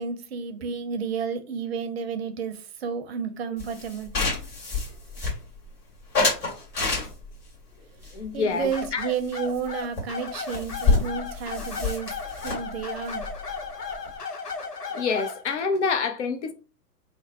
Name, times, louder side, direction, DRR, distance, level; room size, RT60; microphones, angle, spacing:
voice 1, 0.0-4.1 8.3-13.3, right 6 dB, 40° right, 0.6 m, -31 dB
sound 1, 3.6-5.7 6.1-7.4 8.0-9.3 9.5-9.7 10.0-10.1 10.3-14.1, left 4 dB, 25° left, 1.7 m, -28 dB
voice 2, 8.1-9.1 14.9-16.5, left 5 dB, 50° left, 0.6 m, -27 dB
sound 2, 8.7-15.4, left 5 dB, 90° left, 0.8 m, -35 dB
3.4 x 2.0 x 4.1 m
figure-of-eight pair, 115°, 47 cm